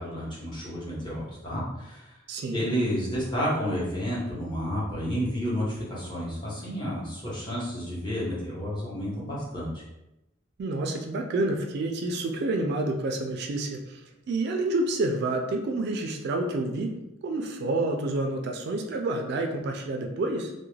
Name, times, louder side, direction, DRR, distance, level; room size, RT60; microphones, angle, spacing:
voice 1, 0.0-2.2 2.5-9.8, equal, 25° left, -7 dB, 0.9 m, -31 dB
voice 2, 2.3-2.7 10.6-16.9 17.2-20.5, right 2 dB, 60° right, 3 dB, 0.3 m, -29 dB
2.3 x 2.1 x 3.1 m, 0.93 s
head